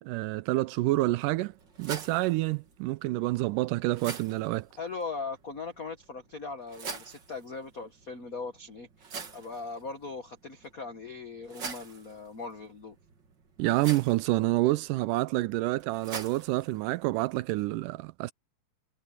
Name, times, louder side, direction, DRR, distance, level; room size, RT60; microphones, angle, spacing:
voice 1, 0.0-4.7 13.6-18.3, right 18 dB, 80° right, 2.2 m, -28 dB
sound 1, 0.8-17.8, right 5 dB, 40° right, 2.3 m, -46 dB
voice 2, 4.7-12.9, left 4 dB, 85° left, 0.7 m, -39 dB
omnidirectional pair, 3.7 m